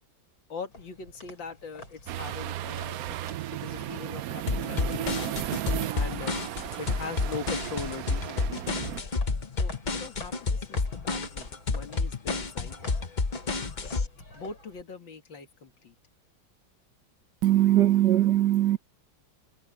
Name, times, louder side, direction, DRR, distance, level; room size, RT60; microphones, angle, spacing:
voice 1, 0.5-3.2 3.5-5.3 5.9-6.4 6.8-8.7 9.6-12.8 14.3-15.9, left 5 dB, 70° left, 2.8 m, -41 dB
sound 1, 0.7-14.8, left 2 dB, 85° left, 8.1 m, -49 dB
sound 2, 2.1-9.0, right 14 dB, 85° right, 0.7 m, -35 dB
sound 3, 4.5-14.1, left 4 dB, 35° left, 0.8 m, -30 dB
voice 2, 17.4-18.8, right 13 dB, 65° right, 1.6 m, -21 dB
omnidirectional pair, 2.1 m